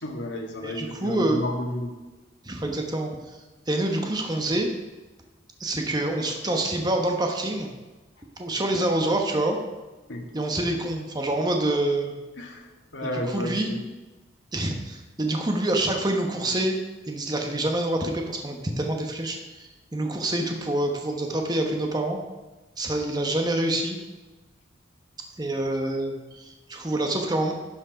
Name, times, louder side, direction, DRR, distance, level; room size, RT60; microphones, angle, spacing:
voice 1, 0.0-1.9 10.1-10.3 12.4-13.8, left 1 dB, 70° left, 1 dB, 1.7 m, -32 dB
voice 2, 0.6-1.4 2.4-3.1 3.7-4.7 5.6-7.7 8.4-9.6 10.3-12.1 13.0-13.7 14.5-16.8 17.1-22.2 22.8-24.0 25.4-27.5, right 1 dB, 20° right, 2 dB, 1.0 m, -26 dB
11.5 x 6.4 x 4.8 m, 1.2 s
head